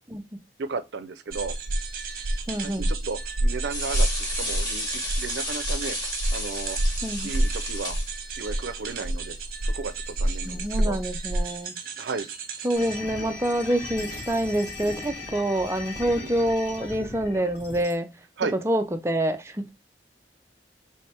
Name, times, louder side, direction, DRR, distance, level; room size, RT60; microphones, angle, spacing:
voice 1, 0.6-1.6 2.6-6.0 6.3-6.8 7.2-8.0 8.4-9.4 9.6-11.0 12.0-12.3 13.2-13.3 14.1-14.2 16.2-16.4 18.4-18.6, right 4 dB, 75° right, 0.5 m, -34 dB
sound 1, 1.3-13.0, right 1 dB, 50° right, 0.9 m, -29 dB
voice 2, 2.5-2.9 7.0-7.3 10.5-11.8 12.6-18.1 18.6-19.7, right 1 dB, 15° right, 0.4 m, -27 dB
sound 2, 3.7-8.2, left 1 dB, 20° left, 1.5 m, -33 dB
sound 3, 12.7-17.9, left 2 dB, 90° left, 1.9 m, -38 dB
3.5 x 3.3 x 4.3 m
head